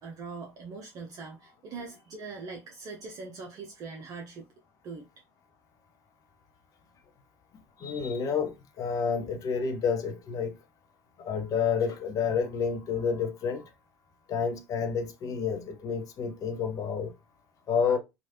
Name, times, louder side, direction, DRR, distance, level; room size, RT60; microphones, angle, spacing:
voice 1, 0.0-4.5 4.8-5.1, right 4 dB, 45° right, 0.6 m, -42 dB
voice 2, 7.8-10.5 11.2-13.7 14.3-17.1 17.7-18.0, left 6 dB, 40° left, 0.7 m, -29 dB
3.1 x 2.4 x 2.8 m
figure-of-eight pair, 65°, 9 cm